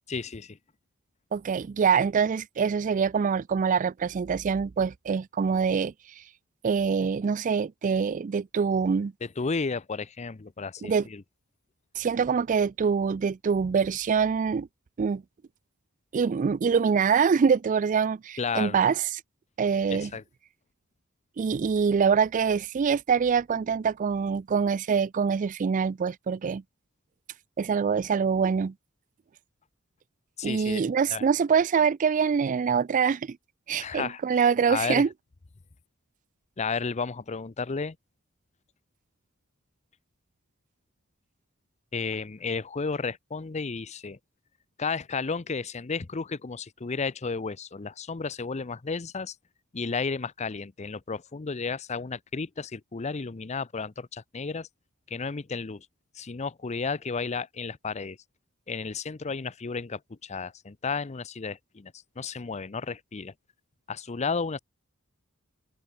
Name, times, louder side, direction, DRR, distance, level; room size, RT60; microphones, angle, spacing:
voice 1, 0.1-0.6 9.2-11.2 18.4-18.8 19.9-20.2 30.4-30.8 31.1-31.2 33.8-35.0 36.6-38.0 41.9-44.2 44.8-49.3 49.7-54.7 55.1-55.9 56.1-58.2 58.7-63.3 63.9-64.6, left 4 dB, 35° left, 0.6 m, -33 dB
voice 2, 1.3-6.2 6.6-9.1 10.8-11.0 12.0-14.7 15.0-15.2 16.1-19.0 19.6-20.1 21.4-26.6 27.6-28.7 30.4-33.4 33.7-35.1, right 6 dB, 35° right, 0.3 m, -25 dB
head